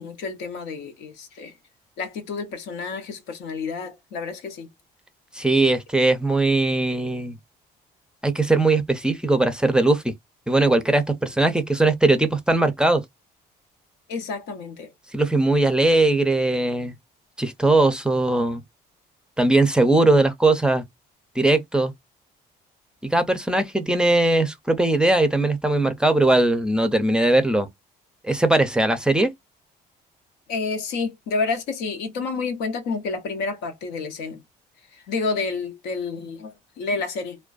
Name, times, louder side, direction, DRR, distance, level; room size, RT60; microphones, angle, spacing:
voice 1, 0.0-1.5 2.0-4.7 14.1-14.9 30.5-34.4 34.9-37.4, left 4 dB, 90° left, 0.8 m, -29 dB
voice 2, 5.3-7.4 8.2-10.0 10.5-13.0 15.1-16.9 17.4-18.6 19.4-20.8 21.4-21.9 23.1-27.7 28.2-29.3, right 2 dB, 5° right, 0.4 m, -20 dB
2.4 x 2.2 x 2.3 m
cardioid pair, 110°, 17 cm